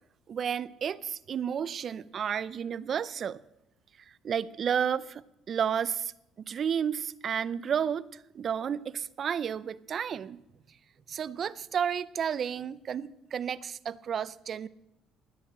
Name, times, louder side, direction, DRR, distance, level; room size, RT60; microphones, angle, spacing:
voice 1, 0.3-3.4 4.2-6.1 6.4-10.4 11.1-14.7, right 8 dB, 40° right, 17 dB, 0.5 m, -32 dB
13.0 x 9.8 x 7.6 m, 0.84 s
cardioid pair, 135°, 0 cm